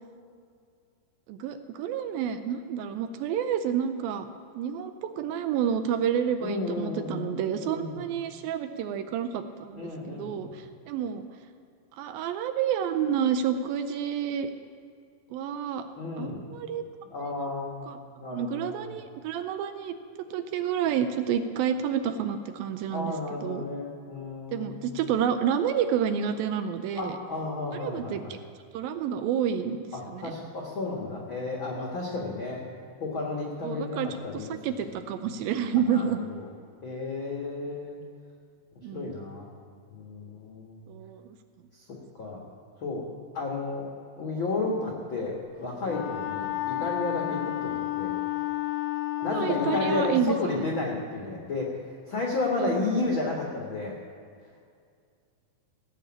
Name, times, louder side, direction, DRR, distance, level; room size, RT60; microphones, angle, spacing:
voice 1, 1.3-4.3 4.5-11.3 12.0-14.5 15.3-15.9 16.2-16.8 17.2-17.5 17.9-18.0 18.3-19.9 20.3-23.1 23.4-23.6 24.5-27.2 27.7-28.4 28.7-29.8 30.1-30.3 33.6-34.1 34.3-36.2 38.8-39.1 40.9-41.4 49.2-50.4 52.6-52.8, right 8 dB, 80° right, 9 dB, 2.2 m, -29 dB
voice 2, 6.4-7.3 7.6-8.0 9.7-10.6 16.0-16.4 17.1-18.9 22.9-25.1 26.9-28.4 29.9-32.6 33.0-35.2 35.9-36.5 36.8-38.0 38.7-39.5 39.9-40.8 41.7-41.8 42.1-42.4 42.8-43.1 43.3-43.9 44.2-48.1 49.2-54.0, left 3 dB, 55° left, -2 dB, 1.4 m, -32 dB
Wind instrument woodwind instrument, 45.9-50.3, left 14 dB, 85° left, 2.7 m, -31 dB
17.0 x 7.0 x 8.6 m, 2.3 s
omnidirectional pair, 4.6 m